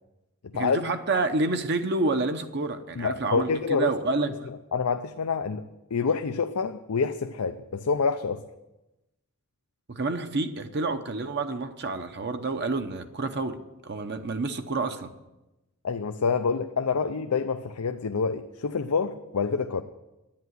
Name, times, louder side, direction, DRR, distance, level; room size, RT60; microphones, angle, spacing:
voice 1, 0.5-4.5 9.9-15.1, right 3 dB, 50° right, 7 dB, 0.8 m, -29 dB
voice 2, 3.0-3.9 4.7-5.6 5.9-8.4 15.8-19.8, left 5 dB, 85° left, 7 dB, 0.6 m, -27 dB
10.5 x 9.2 x 9.5 m, 0.99 s
head